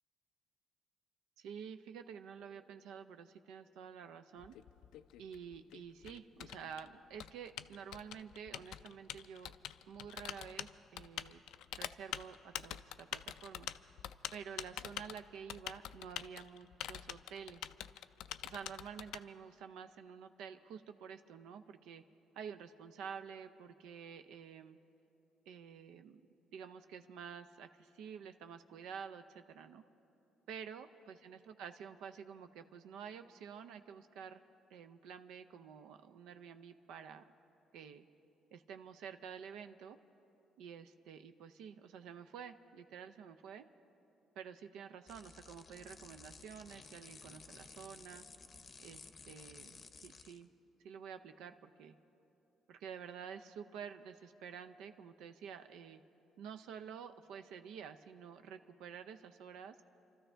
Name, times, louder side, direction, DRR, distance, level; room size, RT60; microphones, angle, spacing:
voice 1, 1.4-4.5 5.2-9.5 9.9-11.4 11.7-13.7 14.3-17.6 18.4-22.0 22.3-24.8 25.5-26.2 26.5-29.8 30.5-34.4 34.7-37.2 37.7-38.0 38.5-40.0 40.6-43.6 44.4-48.2 48.8-50.5 50.8-52.0 52.7-56.0 56.4-59.7, right 7 dB, 85° right, 8 dB, 0.5 m, -50 dB
Typing, 4.4-19.2, left 12 dB, 85° left, 0.3 m, -45 dB
sound 1, 45.1-50.4, left 4 dB, 30° left, 0.6 m, -55 dB
28.0 x 13.5 x 3.4 m, 2.9 s
cardioid pair, 125°, 0 cm